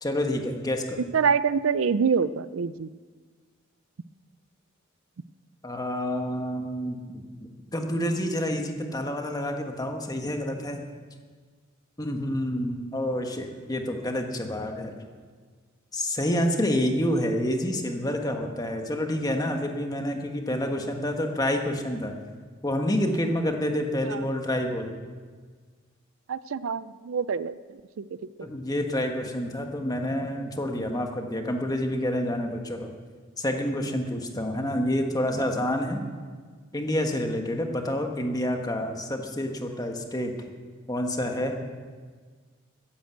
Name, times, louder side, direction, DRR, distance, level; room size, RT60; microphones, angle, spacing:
voice 1, 0.0-1.0 5.6-10.8 12.0-14.9 15.9-22.1 22.6-24.9 28.4-32.9 33.4-36.0 36.7-40.3 40.9-41.5, left 1 dB, 20° left, 4 dB, 1.4 m, -28 dB
voice 2, 1.1-2.9 24.0-24.2 26.3-28.0 28.4-28.5, right 6 dB, 75° right, 16 dB, 0.5 m, -26 dB
14.5 x 10.5 x 7.9 m, 1.5 s
head